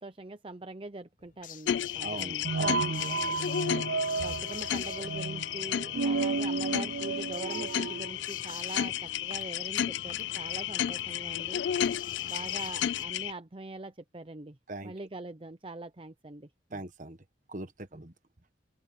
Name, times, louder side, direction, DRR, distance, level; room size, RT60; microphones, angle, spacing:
voice 1, 0.0-2.5 4.2-11.6 12.2-14.6 14.8-16.8 17.9-18.0, right 2 dB, 30° right, 0.7 m, -43 dB
sound 1, 1.2-2.2 2.4-13.0, left 6 dB, 45° left, 0.9 m, -47 dB
sound 2, 1.7-13.3, left 10 dB, 75° left, 0.3 m, -33 dB
voice 2, 2.0-3.4 14.7-14.9 16.7-17.2 17.5-18.1, right 2 dB, 45° right, 1.5 m, -40 dB
sound 3, 2.4-8.1, right 4 dB, 80° right, 0.5 m, -32 dB
open air
head